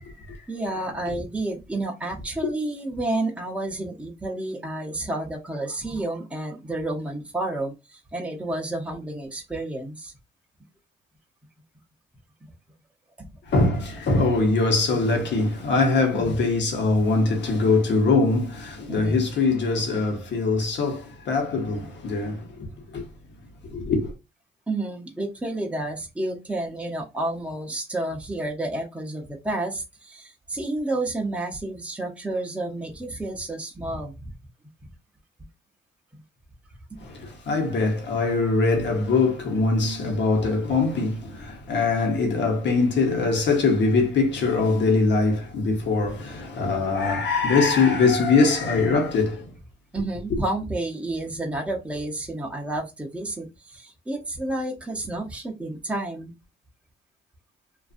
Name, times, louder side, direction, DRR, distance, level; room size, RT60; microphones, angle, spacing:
voice 1, 0.5-10.1 12.4-12.5 13.2-13.3 14.9-15.0 16.1-16.4 18.9-19.2 24.7-34.3 36.1-36.2 36.9-37.0 38.2-38.3 49.9-56.3, right 2 dB, 5° right, 0.7 m, -30 dB
voice 2, 13.5-22.7 22.9-23.0 23.7-24.1 37.0-49.5, left 3 dB, 65° left, 1.0 m, -22 dB
2.5 x 2.4 x 2.4 m
cardioid pair, 90°, 20 cm